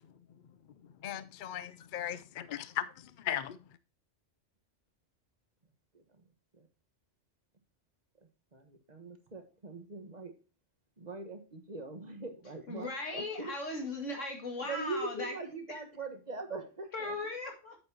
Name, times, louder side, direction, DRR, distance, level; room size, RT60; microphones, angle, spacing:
voice 1, 1.0-3.6, left 10 dB, 60° left, 0.5 m, -37 dB
voice 2, 5.9-6.3 6.5-6.7 8.5-10.3 11.0-13.9 14.6-17.2, right 3 dB, 35° right, 1.4 m, -42 dB
voice 3, 12.7-15.3 16.9-17.8, left 2 dB, 90° left, 2.6 m, -38 dB
8.9 x 7.9 x 2.8 m
omnidirectional pair, 1.2 m